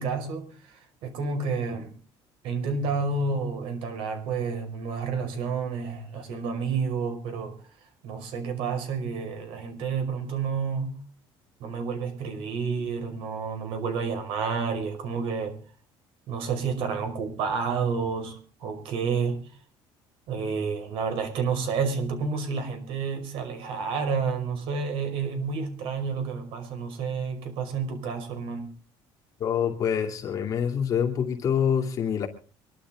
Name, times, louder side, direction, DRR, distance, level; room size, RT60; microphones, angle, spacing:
voice 1, 0.0-2.0 2.4-7.6 8.0-11.0 11.6-15.6 16.3-19.5 20.3-28.8, right 5 dB, 65° right, 6 dB, 5.5 m, -30 dB
voice 2, 29.4-32.3, left 8 dB, 35° left, 3 dB, 2.7 m, -26 dB
25.5 x 12.0 x 3.8 m, 0.39 s
cardioid pair, 165°, 10 cm